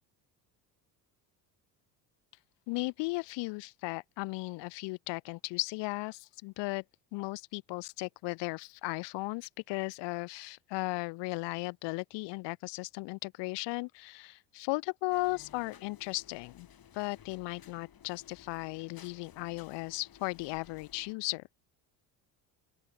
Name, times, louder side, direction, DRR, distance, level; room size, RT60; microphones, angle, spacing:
voice 1, 2.7-6.8 7.1-16.7 16.9-21.4, left 25 dB, 60° left, 0.6 m, -36 dB
sound 1, 15.1-21.1, left 9 dB, 45° left, 6.2 m, -56 dB
open air
hypercardioid pair, 70°, 49 cm